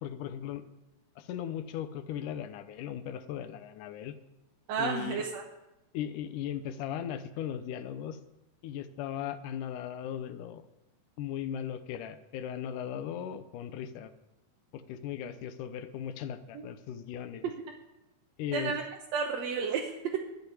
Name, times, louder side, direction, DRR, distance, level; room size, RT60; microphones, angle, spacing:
voice 1, 0.0-0.7 1.2-4.2 4.8-5.3 5.9-8.2 8.6-10.7 11.2-14.1 14.7-17.5 18.4-18.7, left 9 dB, 80° left, 11 dB, 2.3 m, -37 dB
voice 2, 4.7-5.4 16.5-16.7 18.5-18.8 19.1-20.2, right 6 dB, 65° right, 0 dB, 2.1 m, -31 dB
13.0 x 6.6 x 9.8 m, 0.95 s
omnidirectional pair, 3.7 m